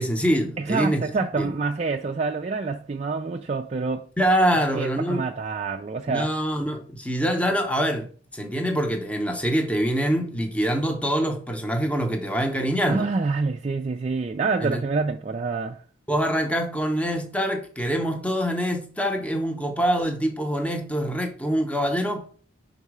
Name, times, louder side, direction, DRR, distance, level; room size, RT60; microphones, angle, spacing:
voice 1, 0.0-1.0 1.4-1.5 4.2-5.3 6.1-13.1 14.6-14.8 16.1-22.3, equal, 5° left, 0.7 m, -25 dB
voice 2, 0.6-4.1 4.5-6.4 12.9-15.8, right 4 dB, 35° right, 0.3 m, -27 dB
5.5 x 3.9 x 4.8 m
head